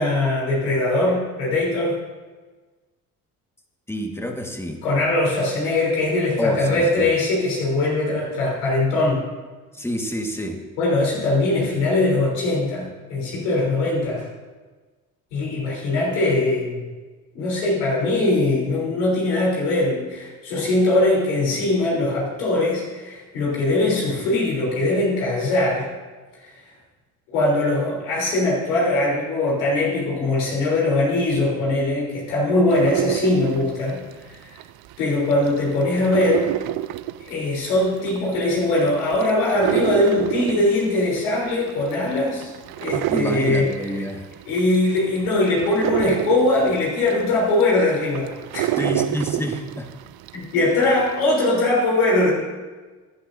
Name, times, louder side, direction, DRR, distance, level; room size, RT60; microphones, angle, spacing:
voice 1, 0.0-2.0 4.8-9.2 10.8-14.2 15.3-16.8 17.3-25.9 26.4-26.5 27.3-34.0 34.3-34.5 35.0-36.5 37.2-42.5 42.8-43.7 44.5-48.9 50.3-52.3, left 2 dB, 85° left, -4 dB, 3.7 m, -21 dB
voice 2, 3.9-4.8 6.4-7.1 9.7-10.6 43.1-44.3 48.8-49.9, equal, 5° left, 3 dB, 1.7 m, -28 dB
sound 1, 32.7-35.0 35.3-50.4 50.8-51.4, right 15 dB, 60° right, 0.5 m, -28 dB
14.0 x 10.5 x 2.7 m, 1.3 s
hypercardioid pair, 60°, 43 cm